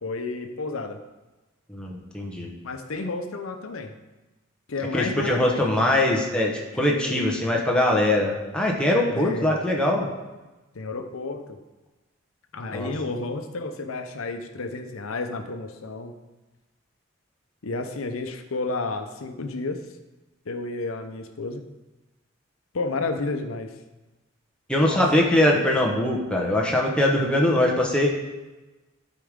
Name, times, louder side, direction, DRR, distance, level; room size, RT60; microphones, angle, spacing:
voice 1, 0.0-1.0 2.6-3.9 4.7-5.8 6.9-7.2 9.1-9.6 10.7-11.6 12.5-16.1 17.6-19.8 20.5-21.6 22.7-23.7 24.8-25.0, left 3 dB, 90° left, 7 dB, 0.7 m, -31 dB
voice 2, 1.7-2.5 4.9-10.1 12.7-12.9 24.7-28.1, left 1 dB, 5° left, -2 dB, 1.1 m, -22 dB
12.0 x 4.8 x 3.6 m, 1.1 s
head